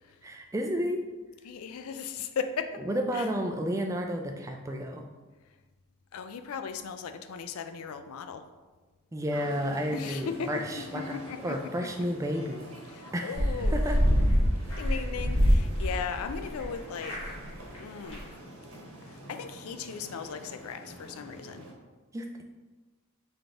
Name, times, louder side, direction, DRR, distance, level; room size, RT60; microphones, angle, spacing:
voice 1, 0.2-1.0 2.9-5.0 9.1-11.2 11.4-12.7 13.1-13.5 13.7-14.0 14.9-15.0 22.1-22.4, equal, 15° right, 3 dB, 0.3 m, -31 dB
voice 2, 1.4-2.8 3.1-3.3 6.1-8.5 9.9-11.9 12.9-13.8 14.8-17.4 17.8-18.2 19.0-21.7, left 6 dB, 75° left, 8 dB, 0.4 m, -37 dB
sound 1, 9.3-21.7, right 1 dB, 65° right, 1.2 m, -47 dB
sound 2, 13.3-16.6 16.9-17.5 17.7-17.8 18.0-18.2, equal, 60° left, 1.5 m, -25 dB
4.0 x 3.4 x 3.7 m, 1.3 s
head